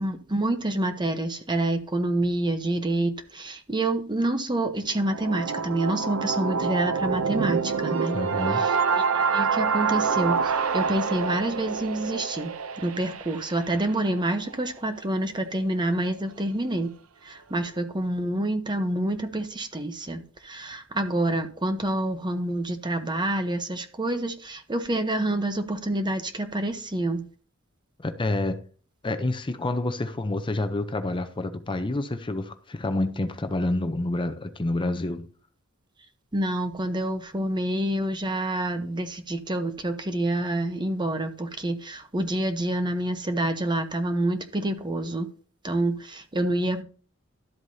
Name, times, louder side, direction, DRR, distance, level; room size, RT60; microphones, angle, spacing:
voice 1, 0.0-8.2 8.5-12.5 12.8-16.9 17.2-27.3 36.3-45.3 45.6-46.8, right 1 dB, 20° right, 0.9 m, -27 dB
sound 1, 4.8-14.7, right 5 dB, 70° right, 0.7 m, -27 dB
voice 2, 8.1-8.6 28.0-28.6 29.0-35.3, left 2 dB, 25° left, 0.6 m, -28 dB
12.5 x 7.9 x 2.8 m
head